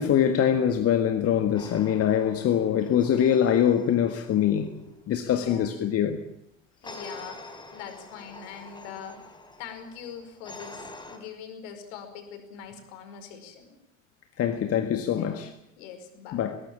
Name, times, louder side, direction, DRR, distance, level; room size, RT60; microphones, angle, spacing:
voice 1, 0.0-4.7 5.1-6.2 14.4-15.5 16.3-16.6, left 9 dB, 35° left, 1.7 m, -23 dB
sound 1, 1.6-4.7 6.8-11.2, left 2 dB, 10° left, 4.4 m, -46 dB
voice 2, 5.2-5.8 6.8-9.3 9.6-13.8 15.1-15.5 15.8-16.5, left 7 dB, 60° left, 5.1 m, -43 dB
21.5 x 18.5 x 8.8 m
figure-of-eight pair, 75°, 39 cm